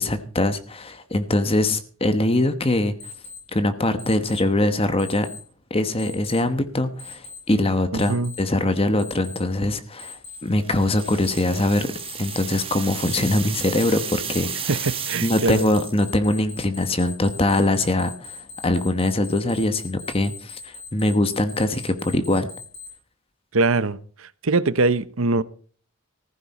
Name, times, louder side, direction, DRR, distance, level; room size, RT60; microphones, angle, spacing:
voice 1, 0.0-2.9 3.5-5.3 5.7-11.9 12.2-14.7 15.2-22.5, left 1 dB, 25° left, 1.1 m, -22 dB
Alarm, 3.0-3.4 4.0-4.4 5.0-5.4 6.0-6.4 7.0-7.4 8.0-8.4 9.0-9.4 10.0-10.4 11.0-11.4 12.0-12.4 13.0-22.9, left 5 dB, 80° left, 7.1 m, -39 dB
voice 2, 7.9-8.3 14.7-15.6 23.5-25.4, right 3 dB, 70° right, 0.9 m, -22 dB
sound 1, 10.5-16.1, right 8 dB, 25° right, 1.4 m, -33 dB
15.0 x 14.0 x 4.2 m
head